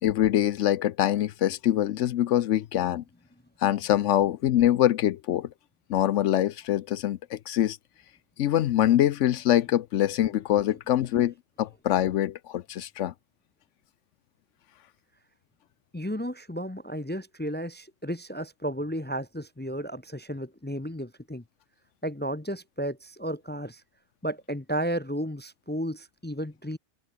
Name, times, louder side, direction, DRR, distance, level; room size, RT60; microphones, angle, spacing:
voice 1, 0.0-3.0 3.6-5.5 5.9-7.8 8.4-13.1, left 12 dB, 80° left, 1.0 m, -24 dB
voice 2, 15.9-21.4 22.0-23.8 24.2-26.8, equal, 10° left, 0.5 m, -33 dB
omnidirectional pair, 1.2 m